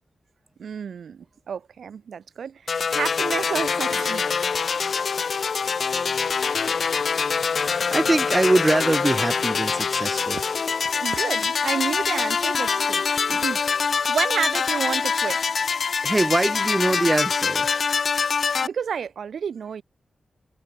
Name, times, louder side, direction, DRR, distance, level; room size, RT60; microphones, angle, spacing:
voice 1, 0.6-4.3 11.0-13.6 14.1-15.4 18.6-19.8, right 7 dB, 80° right, 6.0 m, -30 dB
sound 1, 2.7-18.7, left 5 dB, 55° left, 0.5 m, -24 dB
voice 2, 7.6-10.4 16.0-17.7, right 2 dB, 20° right, 1.8 m, -23 dB
wide cardioid pair, 135°, 0 cm